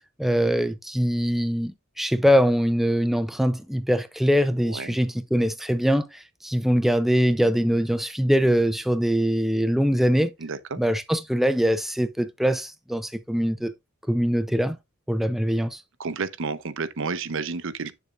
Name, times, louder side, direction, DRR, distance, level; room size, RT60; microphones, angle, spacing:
voice 1, 0.2-10.3 10.8-13.7 14.1-14.8 15.1-15.8, equal, ahead, 0.5 m, -23 dB
voice 2, 4.6-5.0 10.4-10.8 16.0-17.9, right 4 dB, 60° right, 0.8 m, -31 dB
8.8 x 7.0 x 2.5 m
head